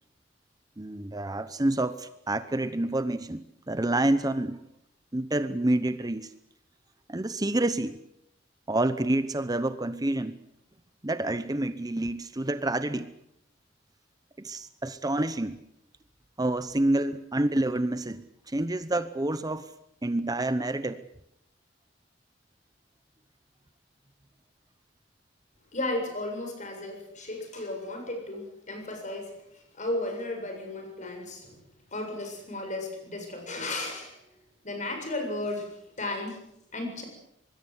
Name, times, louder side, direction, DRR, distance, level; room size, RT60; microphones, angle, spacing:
voice 1, 0.8-4.6 5.1-6.3 7.1-8.0 8.7-10.4 11.0-13.1 14.4-15.6 16.4-19.7 20.0-21.0, right 1 dB, 20° right, 12 dB, 0.9 m, -28 dB
voice 2, 25.7-31.6 31.9-34.3 34.6-37.1, left 2 dB, 40° left, 4 dB, 7.4 m, -34 dB
25.0 x 21.0 x 8.0 m, 0.79 s
head